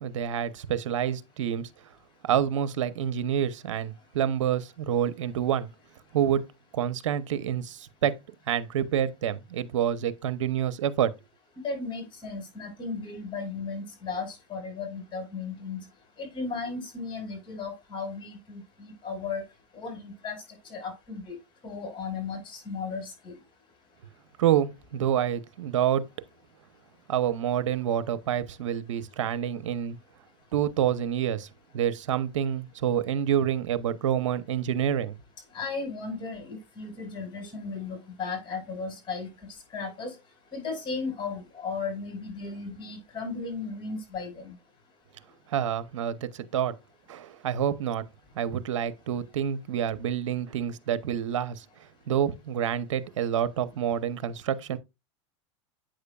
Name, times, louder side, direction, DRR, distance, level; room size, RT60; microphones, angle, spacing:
voice 1, 0.0-1.7 2.2-5.7 6.1-6.4 6.7-8.1 8.5-11.1 24.4-26.1 27.1-30.0 30.5-31.5 31.7-35.2 45.5-46.7 47.1-48.0 48.3-51.6 52.1-54.8, right 9 dB, 85° right, 0.8 m, -27 dB
voice 2, 11.6-15.9 16.2-19.4 19.7-20.4 20.7-21.3 21.6-23.4 35.5-39.3 39.7-40.2 40.5-44.5, left 4 dB, 30° left, 5.2 m, -35 dB
8.8 x 6.5 x 2.3 m
hypercardioid pair, 110°, 16 cm